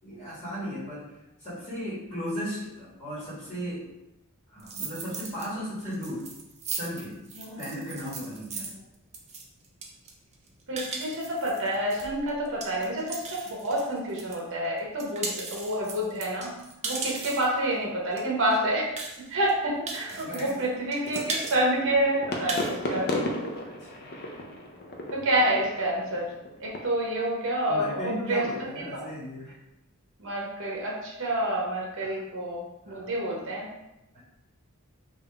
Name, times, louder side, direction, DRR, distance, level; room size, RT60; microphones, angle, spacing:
voice 1, 0.0-3.8 4.5-6.3 6.7-7.2 7.6-8.7 20.1-20.5 23.6-24.0 27.7-29.6 32.0-32.2 32.9-33.1 34.1-34.2, equal, 25° left, -11 dB, 1.4 m, -36 dB
sound 1, 4.6-5.5 5.8-14.4 14.8-17.6 18.2-18.3 18.5-18.6 19.0-19.5 19.9-20.7 20.9-21.6 21.9-22.0 22.3-22.8, right 4 dB, 30° right, 0.5 m, -37 dB
voice 2, 7.4-7.7 10.7-16.6 16.8-18.9 19.3-23.1 25.1-26.3 26.6-29.0 30.2-33.7, right 1 dB, 60° right, -2 dB, 1.0 m, -28 dB
sound 2, 21.0-26.8, left 1 dB, 45° left, 0.5 m, -35 dB
3.5 x 2.5 x 3.3 m, 0.92 s
head